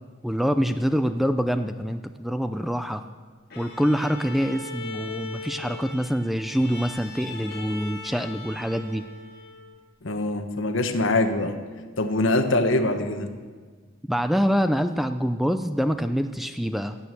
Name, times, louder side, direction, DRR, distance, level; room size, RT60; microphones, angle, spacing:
voice 1, 0.2-3.0 3.6-9.0 14.1-17.0, equal, ahead, 9 dB, 0.4 m, -25 dB
Bowed string instrument, 3.5-9.8, left 3 dB, 50° left, 2.4 m, -40 dB
voice 2, 10.0-11.6 12.0-13.3, left 2 dB, 65° left, 7 dB, 1.3 m, -23 dB
16.5 x 9.3 x 8.1 m, 1.5 s
head